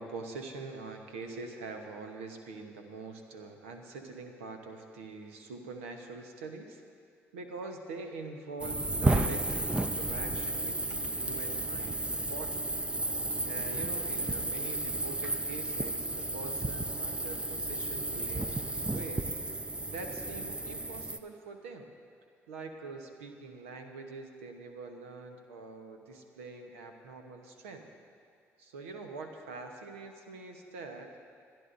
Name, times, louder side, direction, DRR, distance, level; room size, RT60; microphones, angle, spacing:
voice 1, 0.0-6.8 7.3-12.7 13.0-13.1 13.4-19.3 19.9-21.9 22.5-27.9 28.6-31.1, right 3 dB, 85° right, 4 dB, 1.0 m, -44 dB
sound 1, 8.6-21.2, right 2 dB, 15° right, 0.6 m, -33 dB
28.0 x 10.5 x 2.6 m, 2.2 s
hypercardioid pair, 50°, 7 cm